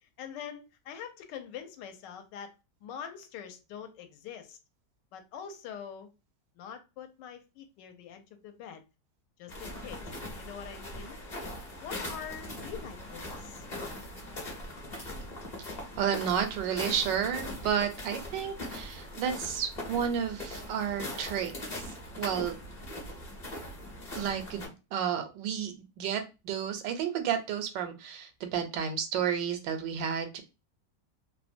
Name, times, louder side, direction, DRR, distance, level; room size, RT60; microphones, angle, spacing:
voice 1, 0.0-2.5 2.8-4.6 5.1-6.1 6.6-8.8 9.4-11.2 11.6-13.6, left 8 dB, 80° left, 7 dB, 1.2 m, -44 dB
sound 1, 9.5-24.7, left 1 dB, 40° left, 0.6 m, -41 dB
voice 2, 16.0-21.8 22.2-22.6 24.2-30.4, right 8 dB, 85° right, 7 dB, 1.3 m, -31 dB
3.0 x 2.1 x 2.5 m, 0.28 s
omnidirectional pair, 1.9 m